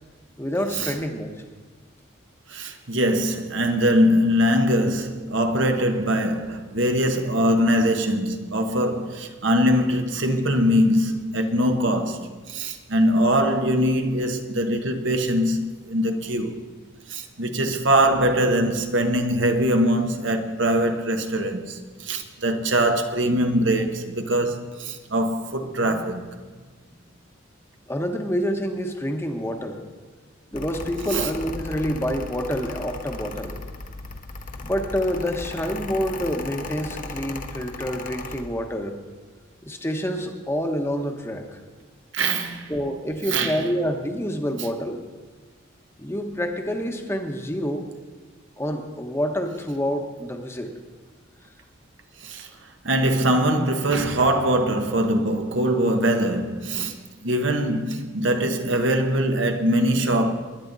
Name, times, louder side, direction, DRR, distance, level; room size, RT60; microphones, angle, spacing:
voice 1, 0.4-1.3 27.9-29.8 30.5-33.6 34.6-38.9 39.6-41.6 42.7-45.0 46.0-47.8 48.6-50.7, equal, 10° left, 1.1 m, -27 dB
voice 2, 2.5-16.6 17.1-26.3 31.1-31.3 42.1-42.7 43.3-43.6 52.2-52.5 52.8-57.0 57.2-60.3, equal, 65° right, 1.2 m, -22 dB
Mechanical fan, 30.5-38.4, left 2 dB, 40° left, 1.0 m, -36 dB
21.0 x 10.5 x 4.0 m
head